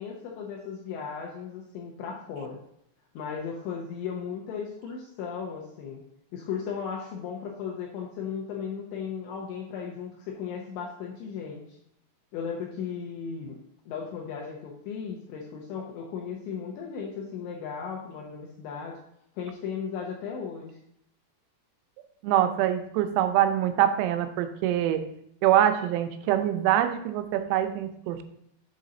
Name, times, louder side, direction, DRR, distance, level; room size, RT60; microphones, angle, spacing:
voice 1, 0.0-2.6 3.1-6.0 6.3-11.8 12.3-13.6 13.9-19.0 19.4-20.8, left 6 dB, 85° left, -2 dB, 2.6 m, -36 dB
voice 2, 22.2-25.0 25.4-28.2, right 11 dB, 90° right, 8 dB, 3.3 m, -24 dB
7.6 x 4.1 x 3.8 m, 0.73 s
omnidirectional pair, 5.9 m